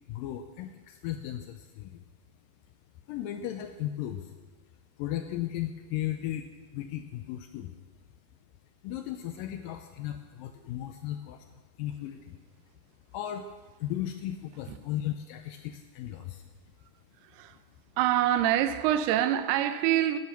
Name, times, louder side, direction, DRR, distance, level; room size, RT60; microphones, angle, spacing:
voice 1, 0.1-2.0 3.1-4.3 5.0-6.5 6.7-7.7 8.8-11.5 11.8-12.4 13.1-13.5 13.8-16.4, left 12 dB, 85° left, 1.9 m, -36 dB
voice 2, 18.0-20.2, right 12 dB, 90° right, 2.7 m, -25 dB
12.0 x 9.8 x 5.9 m
omnidirectional pair, 4.5 m